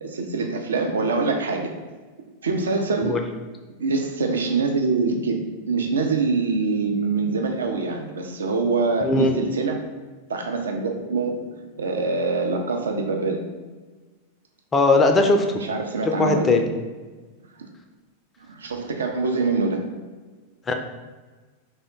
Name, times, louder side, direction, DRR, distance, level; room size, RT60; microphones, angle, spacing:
voice 1, 0.0-1.7 2.4-3.2 3.8-9.8 10.3-11.4 11.8-13.4 15.7-16.6 18.5-19.9, right 4 dB, 70° right, 3 dB, 0.4 m, -24 dB
voice 2, 9.0-9.3 14.7-15.6 16.0-16.6 20.7-20.8, left 3 dB, 20° left, 4 dB, 0.4 m, -19 dB
3.5 x 2.1 x 3.7 m, 1.3 s
figure-of-eight pair, 90°, 0 cm